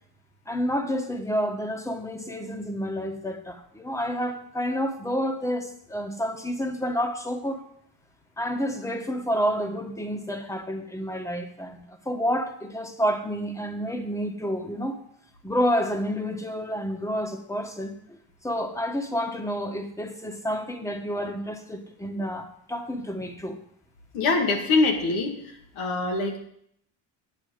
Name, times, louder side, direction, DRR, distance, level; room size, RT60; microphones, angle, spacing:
voice 1, 0.5-7.6 8.4-11.8 12.0-15.0 15.4-17.9 18.4-23.6, equal, 5° left, 5 dB, 1.4 m, -29 dB
voice 2, 24.1-25.3 25.8-26.4, left 3 dB, 85° left, 2 dB, 2.2 m, -23 dB
9.7 x 7.5 x 5.1 m, 0.70 s
cardioid pair, 90°, 48 cm